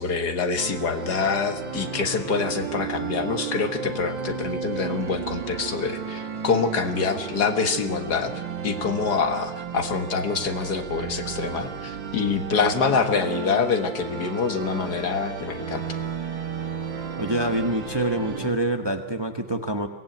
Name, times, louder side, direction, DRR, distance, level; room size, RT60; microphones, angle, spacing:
voice 1, 0.0-8.3 8.6-15.8, left 5 dB, 60° left, 7 dB, 2.0 m, -26 dB
sound 1, 0.6-18.5, right 6 dB, 85° right, 2.6 m, -33 dB
voice 2, 17.2-19.9, right 1 dB, 15° right, 6 dB, 1.1 m, -26 dB
23.0 x 18.0 x 9.2 m, 1.1 s
omnidirectional pair, 1.9 m